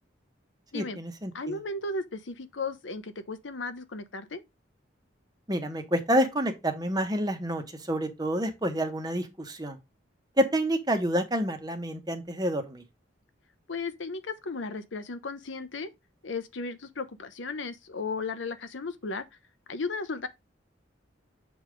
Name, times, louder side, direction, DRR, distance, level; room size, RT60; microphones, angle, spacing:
voice 1, 0.7-1.6 5.5-9.8 10.4-12.8, equal, 20° right, 1.1 m, -28 dB
voice 2, 1.3-4.4 13.7-15.9 16.2-19.2 19.7-20.3, left 3 dB, 85° left, 0.9 m, -35 dB
7.0 x 3.6 x 5.1 m
head